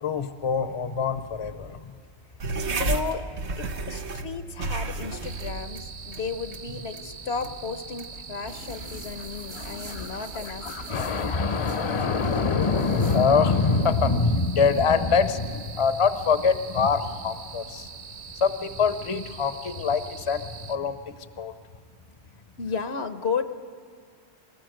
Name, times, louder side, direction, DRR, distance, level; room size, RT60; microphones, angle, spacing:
voice 1, 0.0-1.9 9.5-17.9 18.3-21.5, left 5 dB, 35° left, 10 dB, 0.7 m, -25 dB
sound 1, 2.4-9.3, right 3 dB, 85° right, 1.4 m, -33 dB
voice 2, 2.7-3.3 3.6-11.0 22.6-23.4, left 5 dB, 75° left, 9 dB, 1.2 m, -33 dB
sound 2, 5.2-20.8, right 6 dB, 50° right, 0.9 m, -43 dB
sound 3, 8.5-18.6, equal, 65° right, 2.3 m, -44 dB
22.5 x 18.5 x 7.7 m, 2.1 s
omnidirectional pair, 1.1 m